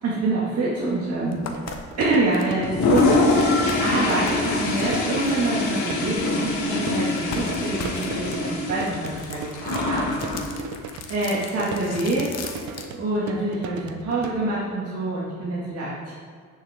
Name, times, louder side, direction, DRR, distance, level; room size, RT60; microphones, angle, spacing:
voice 1, 0.0-10.1 11.1-12.4 12.9-16.1, right 2 dB, 55° right, -7 dB, 2.0 m, -26 dB
sound 1, 0.8-0.9 1.3-6.7 7.2-12.9, left 5 dB, 55° left, 1.1 m, -39 dB
sound 2, 1.3-14.4, right 5 dB, 70° right, 0.8 m, -37 dB
Toilet flush, 2.6-10.5, left 3 dB, 75° left, 1.7 m, -24 dB
10.0 x 6.6 x 3.6 m, 2.1 s
cardioid pair, 90°, 30 cm